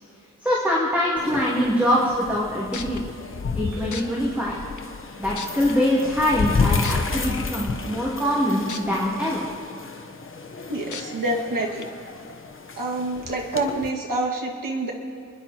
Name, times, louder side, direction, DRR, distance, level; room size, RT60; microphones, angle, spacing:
voice 1, 0.4-3.0 3.5-4.5 5.2-9.4, equal, 5° right, -6 dB, 2.7 m, -23 dB
sound 1, 1.2-13.9, left 4 dB, 40° left, 1.2 m, -31 dB
sound 2, 2.7-3.0 3.9-4.0 4.8-4.9 5.3-5.7 6.8-6.9 8.7-8.8 9.3-9.4 10.9-11.0 11.8-11.9, left 6 dB, 70° left, 1.1 m, -34 dB
voice 2, 10.7-11.9 12.8-14.9, right 2 dB, 90° right, -2 dB, 2.3 m, -27 dB
29.5 x 10.5 x 4.4 m, 2.5 s
wide cardioid pair, 165°, 32 cm